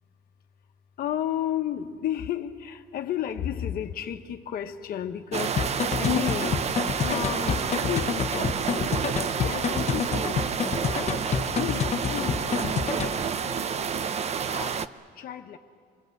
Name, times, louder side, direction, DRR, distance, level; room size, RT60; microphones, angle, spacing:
voice 1, 1.0-6.6 6.9-9.1 9.4-10.4 10.8-13.9 14.5-14.8 15.1-15.6, left 10 dB, 60° left, 5 dB, 1.3 m, -33 dB
sound 1, 5.3-14.9, right 7 dB, 40° right, 0.7 m, -29 dB
sound 2, 5.6-13.2, left 7 dB, 40° left, 1.0 m, -29 dB
27.5 x 21.0 x 8.0 m, 2.2 s
cardioid pair, 110°, 17 cm